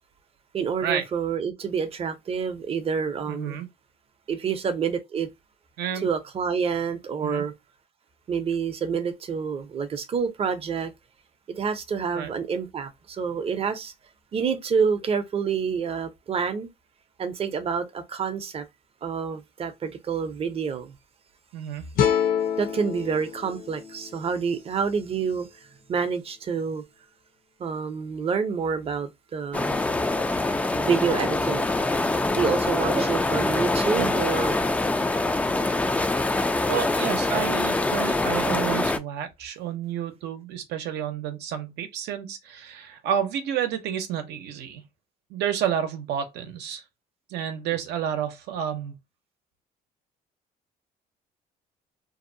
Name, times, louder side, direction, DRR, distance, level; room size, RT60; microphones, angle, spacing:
voice 1, 0.5-3.6 4.3-5.3 6.0-7.5 8.3-10.9 11.6-13.9 14.3-16.7 17.2-18.7 19.0-21.0 22.6-26.8 27.6-29.8 30.7-31.7 32.4-34.6, right 6 dB, 35° right, 0.6 m, -28 dB
voice 2, 3.3-3.7 5.8-6.1 7.2-7.5 12.1-12.3 21.5-22.0 32.9-33.1 33.9-34.1 36.7-44.8 45.3-46.8 47.3-49.0, right 9 dB, 80° right, 0.7 m, -30 dB
sound 1, 21.9-25.1, left 8 dB, 60° left, 0.7 m, -28 dB
sound 2, 29.5-39.0, left 2 dB, 10° left, 0.3 m, -24 dB
2.7 x 2.0 x 2.5 m
cardioid pair, 110°, 17 cm